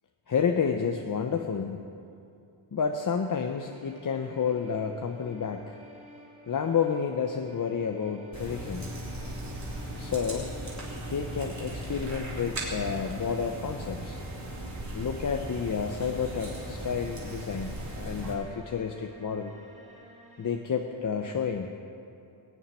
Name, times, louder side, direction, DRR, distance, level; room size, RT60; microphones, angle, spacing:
voice 1, 0.3-1.8 2.7-5.8 6.5-8.9 10.0-10.5 11.0-14.2 14.9-19.5 20.4-21.7, left 6 dB, 40° left, 4 dB, 0.7 m, -30 dB
sound 1, 3.6-20.6, right 1 dB, 15° right, 3.1 m, -52 dB
sound 2, 8.3-18.3, right 1 dB, 35° right, 3.5 m, -37 dB
20.5 x 7.2 x 9.6 m, 2.6 s
wide cardioid pair, 180°, 49 cm